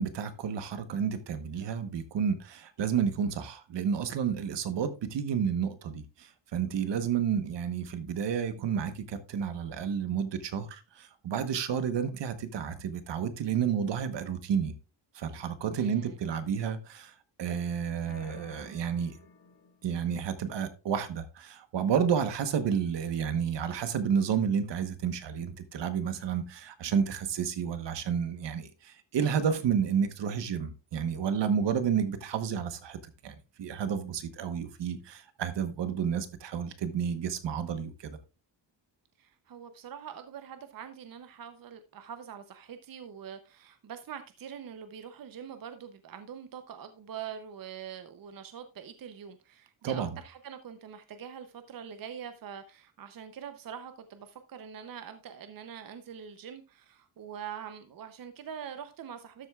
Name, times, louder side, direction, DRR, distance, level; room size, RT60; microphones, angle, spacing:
voice 1, 0.0-14.7 15.1-19.2 19.8-33.0 33.2-38.2 49.8-50.1, right 7 dB, 70° right, 1.2 m, -31 dB
voice 2, 15.7-16.2 39.2-59.5, right 8 dB, 50° right, 0.7 m, -44 dB
sound 1, 18.1-20.0, left 4 dB, 65° left, 4.7 m, -53 dB
12.5 x 7.8 x 2.4 m
wide cardioid pair, 165°, 44 cm